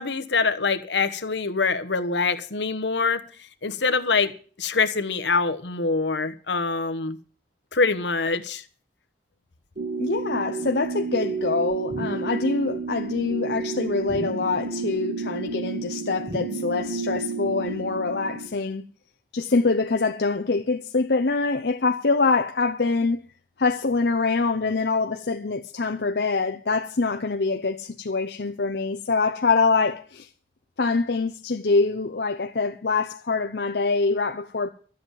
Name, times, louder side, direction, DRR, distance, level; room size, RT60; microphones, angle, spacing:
voice 1, 0.0-3.2 3.6-4.3 4.6-7.2 7.7-8.6, left 4 dB, 85° left, 1.2 m, -24 dB
sound 1, 9.8-18.5, right 4 dB, 55° right, 2.9 m, -31 dB
voice 2, 10.0-18.9 19.3-23.2 23.6-30.3 30.8-34.7, left 3 dB, 70° left, 0.8 m, -24 dB
13.0 x 7.8 x 9.0 m
head